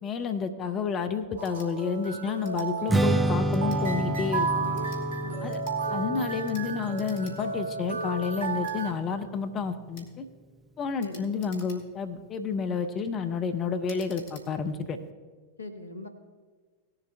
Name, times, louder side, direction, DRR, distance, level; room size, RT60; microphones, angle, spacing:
voice 1, 0.0-4.5 5.4-5.6 5.9-10.2 10.8-15.0, left 5 dB, 30° left, 7 dB, 0.7 m, -30 dB
sound 1, 1.4-1.7 2.4-2.7 3.5-3.8 4.6-5.0 5.5-5.8 6.4-6.7 6.9-7.4 7.7-7.8 8.6-8.8 9.9-10.1 11.0-12.1 12.6-12.9 13.8-14.5, left 2 dB, 55° left, 2.2 m, -51 dB
sound 2, 1.4-8.9, right 4 dB, 65° right, 1.2 m, -33 dB
Strum, 2.9-9.2, right 1 dB, 10° right, 0.5 m, -30 dB
voice 2, 4.5-4.9 5.2-5.6 11.0-11.3 15.6-16.1, left 2 dB, 80° left, 6 dB, 1.0 m, -40 dB
18.0 x 7.2 x 3.4 m, 1.5 s
figure-of-eight pair, 90°, 0 cm